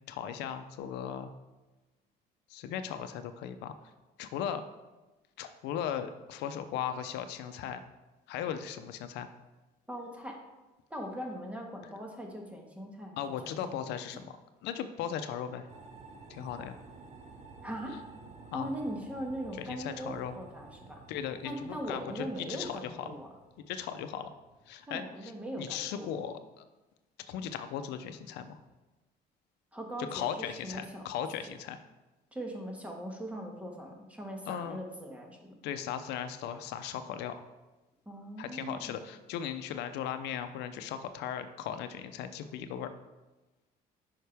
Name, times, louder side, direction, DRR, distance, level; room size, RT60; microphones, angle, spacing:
voice 1, 0.1-1.3 2.5-3.8 4.2-4.6 5.4-7.8 8.3-9.3 13.2-14.4 14.6-15.7 16.3-16.8 18.5-18.7 19.6-20.3 21.1-23.1 23.7-24.3 24.7-25.3 25.6-26.6 27.3-28.6 30.1-31.8 34.5-34.8 35.6-37.3 38.4-42.9, left 9 dB, 85° left, 10 dB, 0.6 m, -37 dB
voice 2, 9.9-10.4 10.9-13.6 17.6-18.0 18.5-21.0 21.4-23.3 24.9-26.1 29.7-31.1 32.3-35.6 38.0-39.0, equal, 10° right, 1 dB, 1.5 m, -40 dB
sound 1, 15.7-25.3, right 4 dB, 45° right, 1.2 m, -53 dB
9.1 x 5.6 x 3.4 m, 1.1 s
cardioid pair, 110°, 17 cm